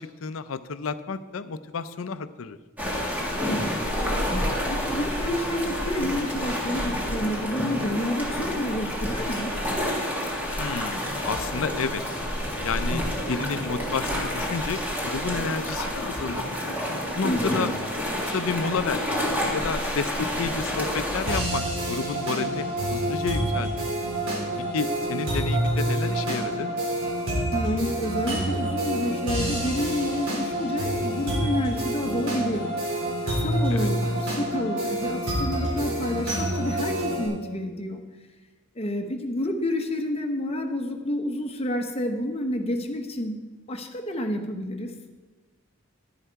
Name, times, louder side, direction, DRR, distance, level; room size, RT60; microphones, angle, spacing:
voice 1, 0.0-2.6 10.6-12.0 12.6-17.7 18.3-19.2 19.5-23.9 24.6-26.7 33.7-33.9, left 5 dB, 75° left, 13 dB, 0.5 m, -31 dB
sound 1, 2.8-21.4, equal, 10° right, 1.7 m, -29 dB
voice 2, 3.5-3.8 4.7-9.6 17.2-17.7 27.5-32.8 33.3-38.0 38.7-43.4 43.7-44.9, left 1 dB, 30° left, 4 dB, 1.0 m, -29 dB
sound 2, 21.3-37.3, right 1 dB, 80° right, 3.9 m, -27 dB
10.5 x 10.0 x 4.6 m, 1.3 s
head